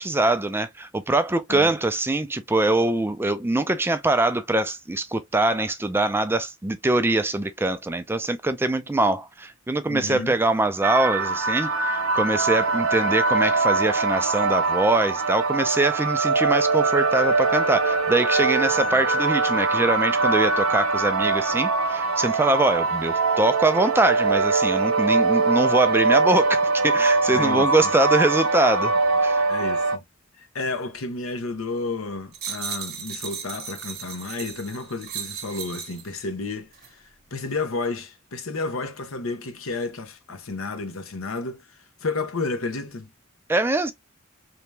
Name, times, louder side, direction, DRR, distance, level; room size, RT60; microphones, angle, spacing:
voice 1, 0.0-28.9 29.2-29.4 43.5-43.9, right 2 dB, 10° right, 0.4 m, -23 dB
voice 2, 9.9-10.4 18.9-19.0 27.3-27.7 29.5-30.0 30.4-36.7 37.3-41.7 42.0-43.1, left 3 dB, 75° left, 0.9 m, -31 dB
sound 1, 10.8-30.0, right 3 dB, 75° right, 0.8 m, -22 dB
sound 2, 32.3-36.1 36.7-36.9, right 7 dB, 50° right, 0.9 m, -36 dB
3.4 x 2.9 x 3.2 m
head